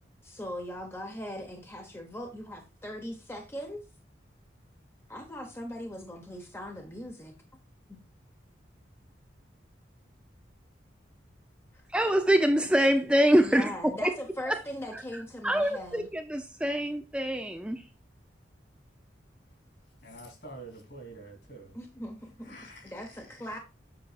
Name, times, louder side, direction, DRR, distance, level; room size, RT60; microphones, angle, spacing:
voice 1, 0.2-3.8 5.1-7.3 7.9-8.0 13.4-16.1 21.7-22.6 22.8-23.6, equal, 15° left, 0.9 m, -40 dB
voice 2, 11.9-13.7 14.0-14.1 14.5-14.6 15.4-17.8, equal, 5° right, 0.4 m, -24 dB
voice 3, 20.0-21.7 22.5-22.9, right 2 dB, 55° left, 3.0 m, -46 dB
7.7 x 6.1 x 2.4 m
head